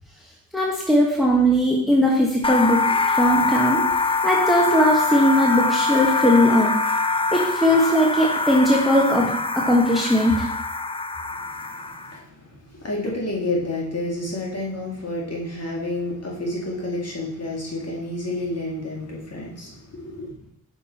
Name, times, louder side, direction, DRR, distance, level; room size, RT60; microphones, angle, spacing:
voice 1, 0.5-2.8 3.1-3.8 4.2-6.7 7.3-9.3 9.5-10.5, equal, ahead, -2 dB, 1.3 m, -19 dB
sound 1, 2.4-12.2, left 3 dB, 15° left, 0.4 m, -24 dB
voice 2, 11.3-20.5, left 1 dB, 40° left, -3 dB, 2.0 m, -30 dB
6.3 x 5.2 x 4.2 m, 0.78 s
cardioid pair, 60°, 37 cm